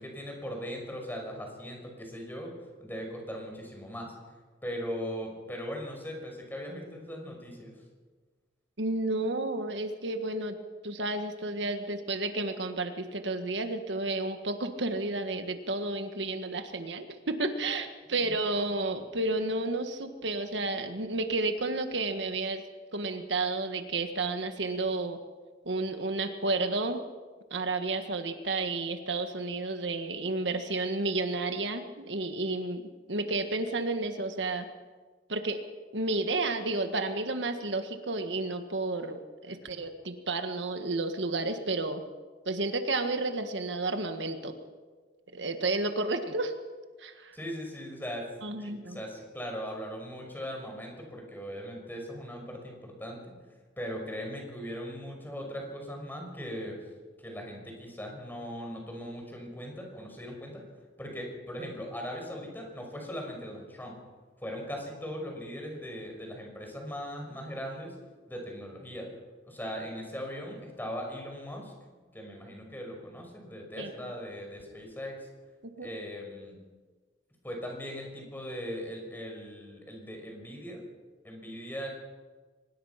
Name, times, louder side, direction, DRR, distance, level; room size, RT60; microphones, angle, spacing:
voice 1, 0.0-2.5 2.8-4.1 4.6-7.7 18.2-18.3 47.3-48.3 48.6-53.4 53.8-56.8 57.2-60.6 61.0-64.0 64.4-67.9 68.3-69.1 69.4-71.7 72.1-75.3 75.8-76.6 77.4-80.8 81.2-81.9, equal, 10° left, 1 dB, 5.8 m, -39 dB
voice 2, 8.8-10.6 10.8-22.6 22.9-25.2 25.6-27.0 27.5-34.7 35.3-35.6 35.9-42.0 42.4-44.5 45.3-46.5 47.0-47.3 48.4-49.0 73.8-73.9 75.8-75.9, right 2 dB, 75° right, 7 dB, 1.7 m, -31 dB
24.0 x 20.0 x 5.9 m, 1.4 s
head